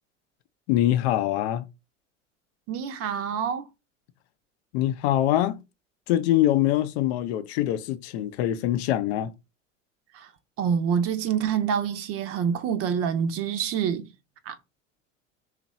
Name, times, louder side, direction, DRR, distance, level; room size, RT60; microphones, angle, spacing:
voice 1, 0.7-1.6 4.7-5.6 6.1-9.3, left 13 dB, 55° left, 0.6 m, -24 dB
voice 2, 2.7-3.6 10.1-10.3 10.6-14.1 14.5-14.6, right 7 dB, 40° right, 0.6 m, -26 dB
3.0 x 2.5 x 4.0 m
figure-of-eight pair, 80°, 38 cm